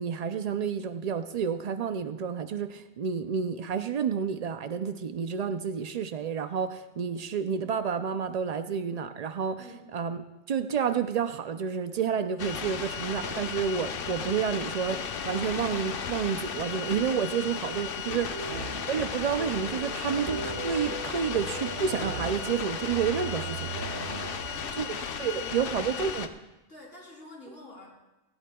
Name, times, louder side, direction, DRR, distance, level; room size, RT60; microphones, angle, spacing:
voice 1, 0.0-9.6 9.9-10.2 10.5-18.3 18.9-23.7 24.8-26.3, right 7 dB, 80° right, 9 dB, 0.3 m, -30 dB
sound 1, 12.4-26.3, left 7 dB, 55° left, 0.8 m, -35 dB
sound 2, 17.6-24.6, right 4 dB, 45° right, 1.1 m, -39 dB
voice 2, 24.2-26.1 26.7-27.9, left 1 dB, 75° left, -3 dB, 3.9 m, -49 dB
17.5 x 16.0 x 2.3 m, 1.0 s
omnidirectional pair, 1.3 m